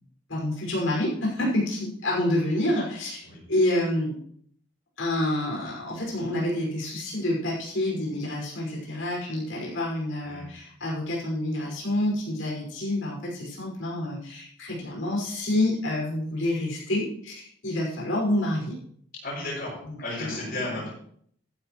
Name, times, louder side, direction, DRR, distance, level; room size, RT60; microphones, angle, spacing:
voice 1, 0.3-4.1 5.0-18.8 19.9-20.7, left 1 dB, 85° left, -4 dB, 5.5 m, -28 dB
voice 2, 19.2-20.9, left 2 dB, 45° left, -8 dB, 6.6 m, -34 dB
14.5 x 12.0 x 3.1 m, 0.63 s
head